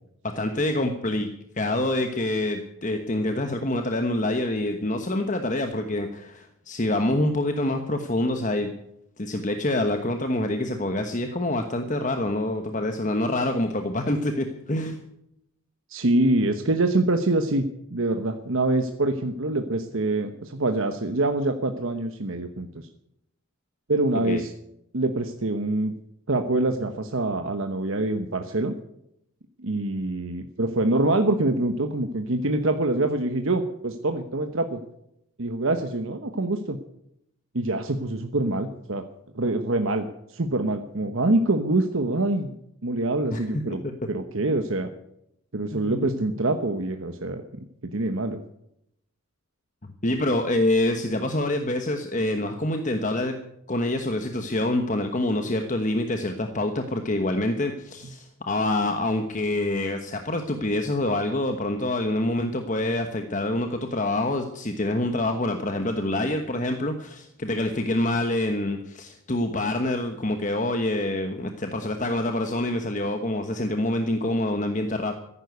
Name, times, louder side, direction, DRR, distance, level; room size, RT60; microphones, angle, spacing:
voice 1, 0.3-1.3 1.5-8.7 9.2-15.0 24.1-24.4 43.3-43.9 45.7-46.1 50.0-53.4 53.7-75.1, left 1 dB, 35° left, 6 dB, 1.2 m, -26 dB
voice 2, 15.9-17.6 17.9-22.7 23.9-24.5 24.9-25.9 26.3-28.7 29.6-34.8 35.4-36.8 37.5-39.0 39.3-42.5 42.8-43.8 44.1-44.9 45.5-48.4, right 2 dB, 65° right, 6 dB, 1.1 m, -25 dB
14.5 x 11.0 x 8.1 m, 0.78 s
head